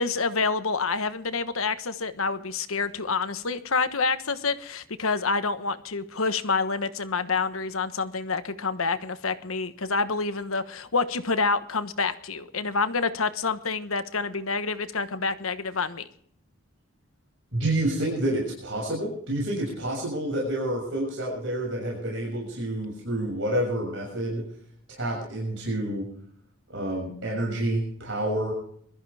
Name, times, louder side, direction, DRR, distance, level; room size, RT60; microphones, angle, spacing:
voice 1, 0.0-16.1, left 4 dB, 90° left, 11 dB, 1.3 m, -27 dB
voice 2, 17.5-24.5 24.9-26.0 26.7-28.5, right 1 dB, 65° right, -2 dB, 6.6 m, -28 dB
22.5 x 14.0 x 3.5 m, 0.63 s
head